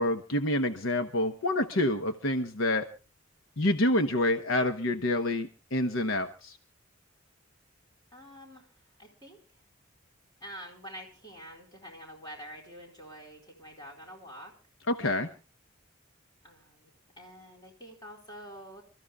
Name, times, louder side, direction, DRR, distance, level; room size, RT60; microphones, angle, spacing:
voice 1, 0.0-2.9 3.6-6.6 14.9-15.3, left 1 dB, 70° left, 7 dB, 1.0 m, -27 dB
voice 2, 8.1-8.7 9.0-9.4 10.4-14.5 16.4-18.8, equal, 20° left, 0 dB, 4.4 m, -47 dB
30.0 x 14.0 x 2.4 m, 0.32 s
head